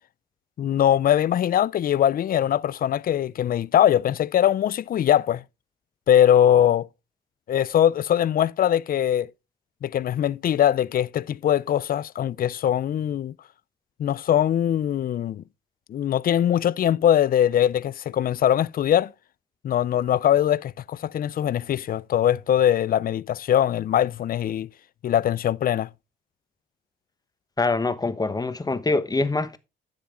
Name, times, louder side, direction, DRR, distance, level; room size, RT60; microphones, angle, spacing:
voice 1, 0.6-5.4 6.1-6.9 7.5-9.3 9.8-13.3 14.0-15.4 15.9-19.1 19.6-24.7 25.0-25.9, left 10 dB, 45° left, 0.4 m, -21 dB
voice 2, 27.6-29.6, left 3 dB, 20° left, 1.1 m, -24 dB
10.5 x 7.1 x 3.7 m
cardioid pair, 90°, 20 cm